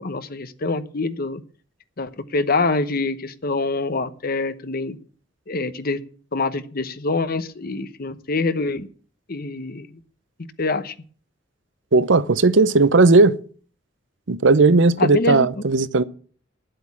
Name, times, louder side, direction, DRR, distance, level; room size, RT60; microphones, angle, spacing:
voice 1, 0.0-1.4 2.0-5.0 5.5-6.0 6.3-8.9 9.3-10.0 10.6-10.9 15.0-15.5, left 3 dB, 50° left, 0.9 m, -25 dB
voice 2, 11.9-13.4 14.3-16.0, right 3 dB, 70° right, 0.8 m, -16 dB
11.0 x 7.9 x 8.5 m
head